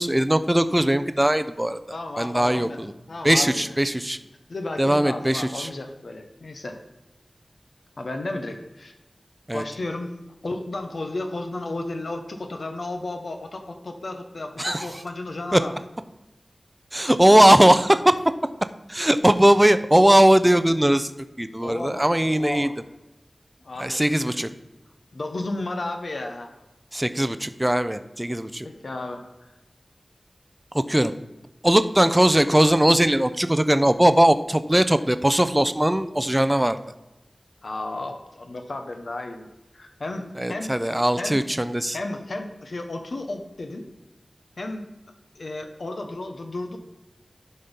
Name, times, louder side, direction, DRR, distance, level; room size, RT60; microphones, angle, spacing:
voice 1, 0.0-2.9 3.2-4.2 4.8-5.7 9.5-9.6 14.6-14.9 15.5-15.6 16.9-18.2 18.9-21.1 21.4-22.7 23.8-24.5 26.9-28.7 30.7-31.1 31.6-36.8 40.4-42.0, right 1 dB, 15° right, 11 dB, 0.5 m, -19 dB
voice 2, 1.9-2.8 3.1-3.7 4.5-6.8 8.0-8.9 9.5-10.1 10.4-15.7 21.6-22.1 22.3-22.7 23.6-24.4 25.1-26.5 28.6-29.2 37.6-39.5 39.7-40.8 41.2-41.6 41.9-43.9 44.6-44.9 45.3-46.8, left 2 dB, 80° left, 5 dB, 1.1 m, -33 dB
11.0 x 4.3 x 5.3 m, 1.0 s
wide cardioid pair, 75°, 0 cm